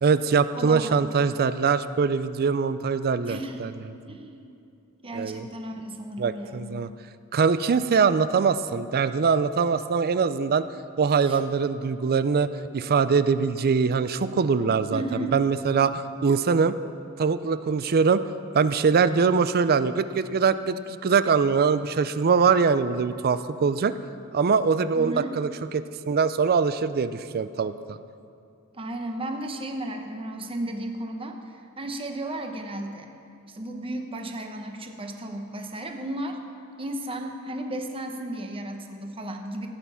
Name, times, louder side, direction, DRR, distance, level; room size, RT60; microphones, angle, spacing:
voice 1, 0.0-3.7 5.1-5.5 6.2-6.9 7.3-10.7 11.0-16.8 17.2-18.2 18.5-23.9 24.3-28.0, right 5 dB, 45° right, 13 dB, 0.4 m, -23 dB
voice 2, 0.5-1.0 3.2-4.6 5.0-6.8 11.2-11.4 14.9-15.3 24.9-25.4 28.7-33.1 33.5-36.4 36.8-39.7, right 1 dB, 25° right, 4 dB, 0.9 m, -34 dB
15.5 x 9.4 x 5.6 m, 2.6 s
head